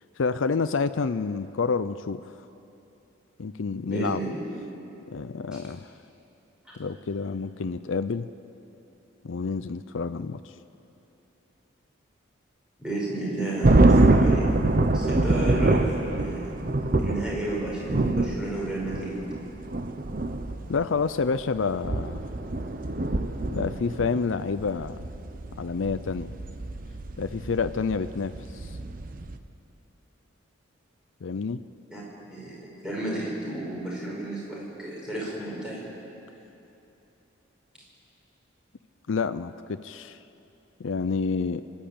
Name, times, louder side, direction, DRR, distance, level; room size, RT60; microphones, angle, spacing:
voice 1, 0.2-2.2 3.4-4.2 5.1-5.9 6.8-8.3 9.2-10.5 20.7-22.3 23.5-25.0 25.6-26.4 27.2-28.8 31.2-31.6 39.1-40.2 40.8-41.6, left 4 dB, 75° left, 11 dB, 0.5 m, -28 dB
voice 2, 3.9-4.4 5.5-5.6 12.8-14.5 14.9-16.5 17.0-19.1 31.9-32.0 32.3-35.8, right 1 dB, 5° right, -6 dB, 5.5 m, -32 dB
sound 1, 13.6-29.3, right 2 dB, 45° right, 0.8 m, -25 dB
25.0 x 12.0 x 8.7 m, 2.9 s
head